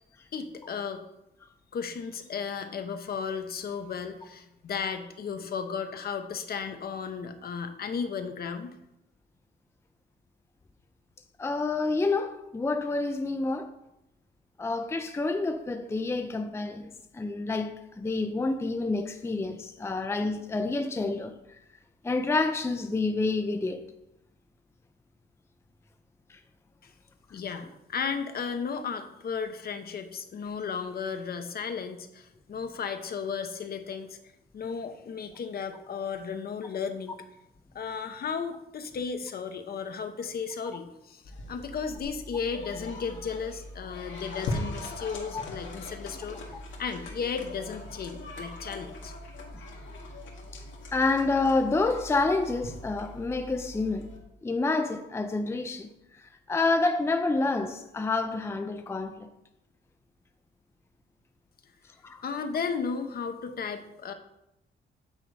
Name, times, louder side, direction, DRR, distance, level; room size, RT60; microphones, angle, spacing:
voice 1, 0.3-1.0 1.7-8.8 26.8-26.9 27.3-34.2 34.5-37.2 37.7-49.1 62.2-64.1, left 6 dB, 50° left, 0.8 m, -34 dB
voice 2, 11.4-13.7 14.6-21.3 22.0-23.8 45.3-45.4 50.9-54.1 54.4-55.9 56.5-59.3 62.0-62.2, left 3 dB, 15° left, 0.5 m, -28 dB
sound 1, 41.3-54.2, left 2 dB, 75° left, 1.6 m, -40 dB
8.7 x 3.9 x 4.7 m
cardioid pair, 90°, 20 cm